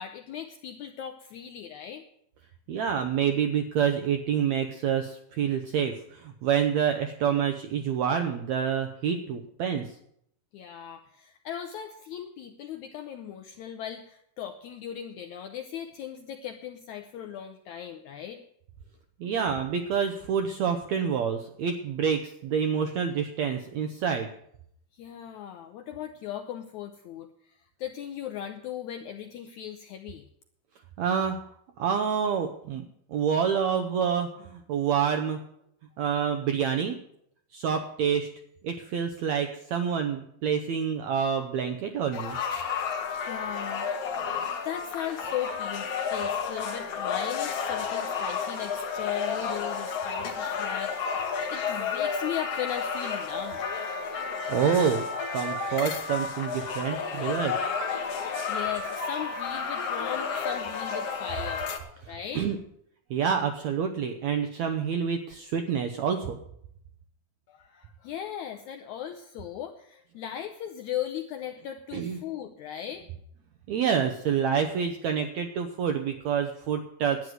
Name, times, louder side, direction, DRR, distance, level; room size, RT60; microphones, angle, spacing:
voice 1, 0.0-2.0 10.5-18.4 24.9-30.2 42.9-43.9 44.6-53.7 58.1-62.5 67.5-73.1, left 10 dB, 85° left, 6 dB, 1.7 m, -38 dB
voice 2, 2.7-9.9 19.2-24.3 31.0-31.4 31.8-32.8 33.1-35.4 36.0-37.0 37.5-38.3 38.6-42.4 54.1-55.0 55.3-57.7 62.3-62.6 63.1-66.4 71.9-72.2 73.7-77.3, right 7 dB, 80° right, 6 dB, 1.6 m, -27 dB
sound 1, 42.1-61.8, left 5 dB, 55° left, 1.9 m, -31 dB
11.0 x 9.5 x 7.9 m, 0.72 s
omnidirectional pair, 4.2 m